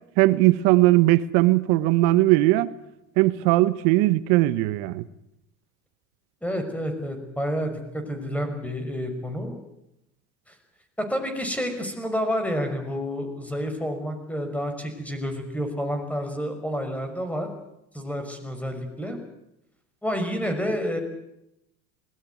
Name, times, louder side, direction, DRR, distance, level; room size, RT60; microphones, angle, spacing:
voice 1, 0.2-2.7 3.2-5.0, right 17 dB, 70° right, 16 dB, 1.4 m, -19 dB
voice 2, 6.4-9.6 10.5-10.6 11.0-17.5 17.9-19.2 20.0-21.0, equal, 5° left, 7 dB, 5.8 m, -29 dB
20.5 x 19.5 x 9.5 m, 0.84 s
supercardioid pair, 95°, 39 cm